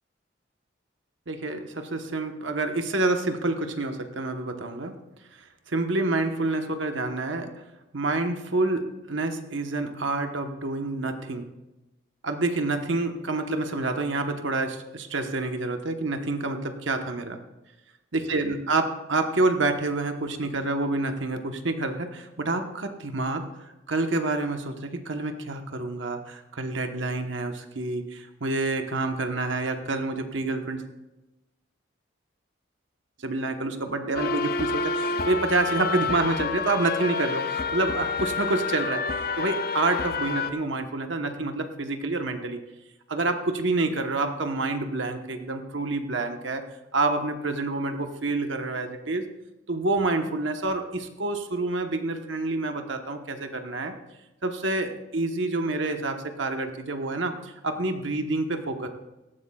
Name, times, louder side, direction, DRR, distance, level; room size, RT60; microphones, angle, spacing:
voice 1, 1.3-4.9 5.7-7.6 7.9-11.4 12.2-17.4 18.1-23.5 23.9-30.8 33.2-39.0 39.4-42.6 43.1-46.6 46.9-49.2 49.7-53.9 54.4-58.9, right 2 dB, 75° right, 6 dB, 1.1 m, -28 dB
sound 1, 34.1-40.5, left 4 dB, 50° left, 0.6 m, -29 dB
18.0 x 14.0 x 2.4 m, 1.0 s
head